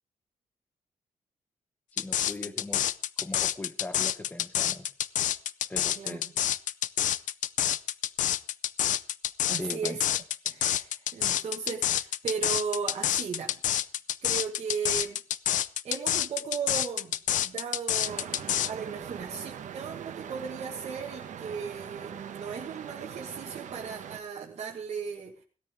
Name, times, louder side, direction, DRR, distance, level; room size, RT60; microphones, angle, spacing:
voice 1, 1.9-2.8 3.2-4.9 5.7-6.5 9.6-10.0, left 2 dB, 10° left, 11 dB, 1.1 m, -40 dB
sound 1, 2.0-18.7, left 11 dB, 85° left, 0.6 m, -28 dB
voice 2, 9.5-10.0 10.4-13.6 14.2-15.2 15.8-25.4, right 6 dB, 55° right, 0 dB, 1.5 m, -36 dB
sound 2, 18.0-24.2, right 8 dB, 70° right, 1.2 m, -42 dB
17.5 x 13.0 x 3.5 m, 0.36 s
wide cardioid pair, 160°, 13 cm